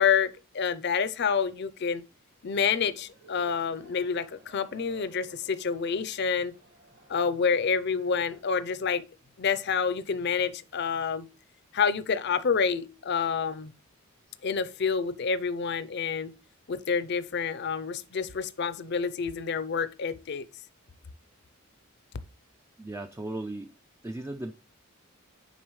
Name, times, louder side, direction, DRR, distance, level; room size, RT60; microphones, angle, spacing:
voice 1, 0.0-2.0 2.4-6.5 7.1-9.0 9.4-11.3 11.7-13.7 14.4-16.3 16.7-20.4, left 6 dB, 55° left, 0.5 m, -28 dB
sound 1, 2.6-8.4, right 2 dB, 55° right, 1.6 m, -55 dB
voice 2, 22.8-23.7 24.0-24.5, right 2 dB, 15° right, 0.3 m, -36 dB
9.3 x 4.0 x 3.1 m
head